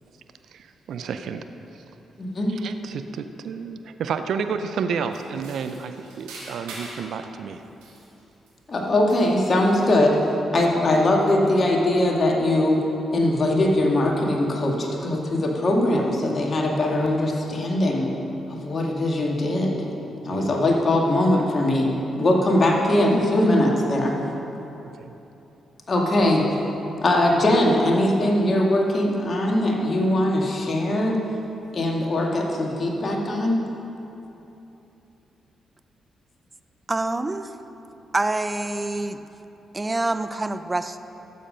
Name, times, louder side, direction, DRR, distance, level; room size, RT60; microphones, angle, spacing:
voice 1, 0.5-1.5 2.5-7.6 20.3-20.6 25.0-25.1, right 6 dB, 70° right, 8 dB, 0.5 m, -31 dB
voice 2, 2.2-2.5 8.7-10.2 10.5-12.8 13.1-18.1 18.5-19.8 20.2-21.9 22.2-24.1 25.9-26.4 27.0-31.2 31.7-33.6, left 1 dB, 45° left, 0 dB, 2.0 m, -21 dB
sound 1, 5.1-7.1 7.6-8.8 9.1-10.0, right 2 dB, 85° right, 2.0 m, -43 dB
voice 3, 36.9-37.5 38.1-39.3 39.7-41.0, right 2 dB, 25° right, 11 dB, 0.6 m, -26 dB
13.0 x 7.4 x 5.2 m, 3.0 s
hypercardioid pair, 45°, 0 cm